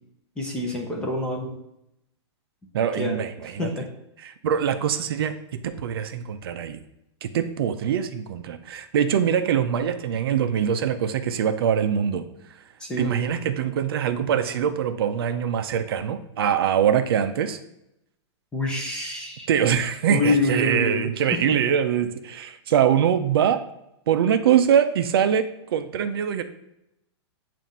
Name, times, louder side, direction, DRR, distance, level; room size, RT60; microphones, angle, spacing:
voice 1, 0.4-1.5 3.0-3.9 12.8-13.3 18.5-19.5 20.1-21.1, left 2 dB, 5° left, 0 dB, 0.6 m, -26 dB
voice 2, 2.7-3.7 4.2-5.4 5.6-6.8 7.2-12.2 13.0-17.6 19.5-23.6 24.1-26.4, right 8 dB, 55° right, 9 dB, 0.5 m, -23 dB
7.4 x 2.5 x 5.3 m, 0.83 s
supercardioid pair, 175°, 15 cm